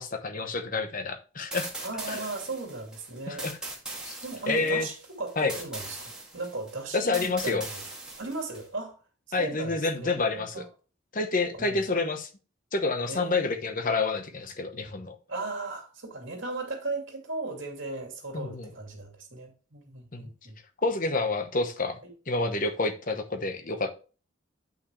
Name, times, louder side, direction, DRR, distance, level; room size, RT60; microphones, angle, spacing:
voice 1, 0.0-1.7 2.1-2.2 3.3-3.6 4.1-4.2 4.5-4.9 5.4-5.5 6.9-7.6 9.3-10.7 11.1-12.3 12.7-15.2 18.3-18.7 20.1-20.2 20.8-22.0 22.3-23.9, left 3 dB, 40° left, 1.0 m, -28 dB
sound 1, 1.5-8.7, right 2 dB, 5° right, 2.1 m, -40 dB
voice 2, 1.8-3.5 4.2-7.8 8.2-9.0 9.3-10.7 11.5-11.8 13.1-13.5 15.3-20.6, right 3 dB, 60° right, 2.6 m, -37 dB
9.3 x 5.8 x 3.2 m
head